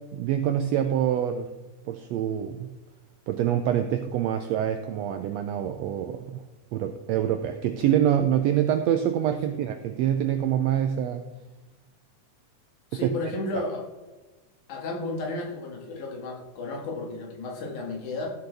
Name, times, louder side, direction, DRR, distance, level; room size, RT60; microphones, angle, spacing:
voice 1, 0.1-1.5 1.8-2.7 3.3-6.4 6.7-11.3 13.0-13.1, right 10 dB, 85° right, 7 dB, 1.5 m, -25 dB
voice 2, 12.9-13.8 14.7-18.3, left 2 dB, 70° left, 0 dB, 3.3 m, -33 dB
14.5 x 7.9 x 3.4 m, 1.2 s
omnidirectional pair, 3.6 m